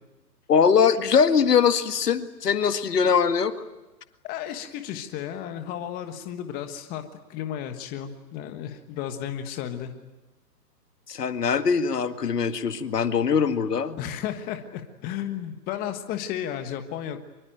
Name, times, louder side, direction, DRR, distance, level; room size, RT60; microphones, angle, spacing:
voice 1, 0.5-3.5 11.1-14.0, left 6 dB, 70° left, 9 dB, 2.0 m, -22 dB
voice 2, 4.2-9.9 14.0-17.2, left 10 dB, 20° left, 7 dB, 1.4 m, -33 dB
25.0 x 23.0 x 9.1 m, 1.1 s
hypercardioid pair, 145°, 49 cm